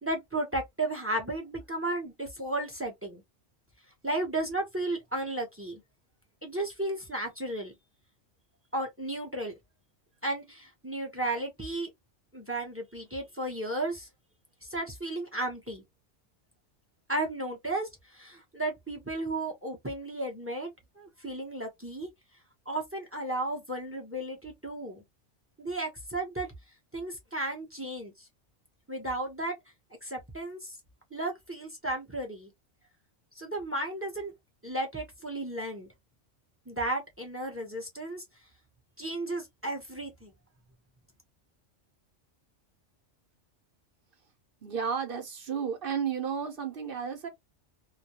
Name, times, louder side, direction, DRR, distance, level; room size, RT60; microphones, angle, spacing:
voice 1, 0.0-3.2 4.0-5.8 6.4-7.7 8.7-9.5 10.2-11.9 12.3-14.1 14.7-15.8 17.1-20.7 21.0-22.1 22.7-25.0 25.6-26.5 26.9-28.3 28.9-29.5 30.0-30.8 31.1-32.5 33.3-34.3 34.6-35.9 36.7-38.2 39.0-40.3, right 2 dB, 15° right, 0.5 m, -34 dB
voice 2, 44.6-47.3, right 7 dB, 55° right, 0.8 m, -32 dB
2.3 x 2.1 x 2.8 m
omnidirectional pair, 1.3 m